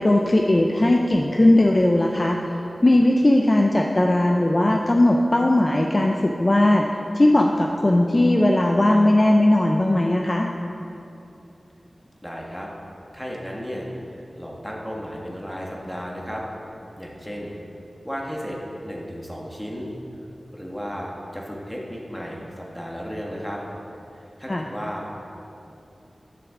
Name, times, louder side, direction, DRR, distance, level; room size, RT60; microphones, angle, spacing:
voice 1, 0.0-6.9 7.1-10.5 24.5-24.7, left 1 dB, 35° left, 1 dB, 0.5 m, -18 dB
voice 2, 12.2-12.7 13.1-16.4 17.0-17.5 18.0-19.9 20.5-23.6 24.4-25.1, equal, 5° left, -3 dB, 1.5 m, -34 dB
10.5 x 6.9 x 3.7 m, 2.8 s
wide cardioid pair, 55°, 0 cm